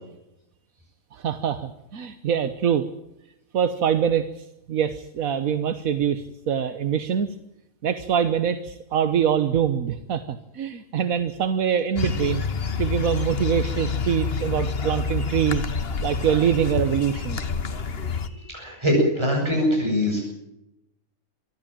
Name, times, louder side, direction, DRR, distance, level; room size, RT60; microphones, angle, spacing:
voice 1, 1.1-2.9 3.5-7.3 7.8-12.4 12.8-15.6 16.0-17.4, right 8 dB, 80° right, 10 dB, 1.5 m, -24 dB
sound 1, 12.0-18.3, left 5 dB, 45° left, 1.4 m, -28 dB
voice 2, 18.5-20.2, equal, 20° right, -1 dB, 7.2 m, -22 dB
24.0 x 13.5 x 8.8 m, 0.86 s
omnidirectional pair, 1.5 m